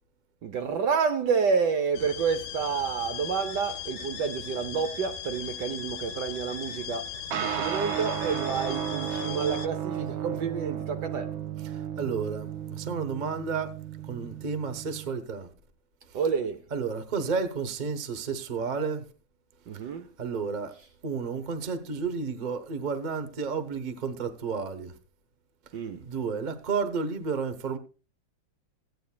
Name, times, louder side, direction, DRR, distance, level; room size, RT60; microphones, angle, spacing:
voice 1, 0.4-11.3 16.1-16.6 19.7-20.1 25.7-26.0, right 6 dB, 65° right, 1.2 m, -29 dB
sound 1, 1.9-9.7, left 8 dB, 65° left, 1.1 m, -38 dB
sound 2, 7.3-15.1, right 10 dB, 85° right, 1.6 m, -34 dB
voice 2, 11.6-13.7 14.0-15.5 16.1-16.2 16.7-19.1 20.2-20.7 21.0-24.9 26.0-27.8, right 5 dB, 35° right, 0.8 m, -31 dB
16.0 x 9.4 x 2.2 m
omnidirectional pair, 2.2 m